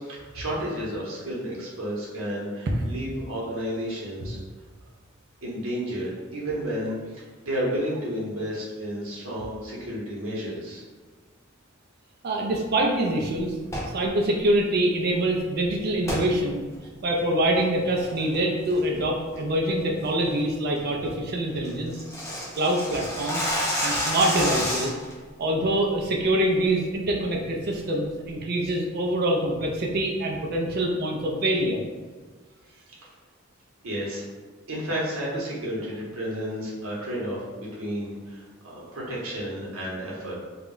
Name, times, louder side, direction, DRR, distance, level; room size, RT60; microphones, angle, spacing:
voice 1, 0.0-4.4 5.4-10.8 33.8-34.2 34.7-40.3, equal, 90° right, -5 dB, 0.8 m, -32 dB
voice 2, 12.2-13.5 13.9-16.6 17.0-22.0 22.6-23.4 23.8-24.9 25.4-31.8, right 1 dB, 50° right, 0 dB, 0.4 m, -25 dB
sound 1, 13.6-14.0 16.1-16.3 16.7-16.8 17.4-17.6 18.0-18.4 18.7-19.0 19.3-19.4 19.8-20.1 20.4-20.5 20.8-20.9 21.1-21.2 21.5-25.1, equal, 15° left, 0.6 m, -29 dB
2.2 x 2.0 x 3.7 m, 1.4 s
head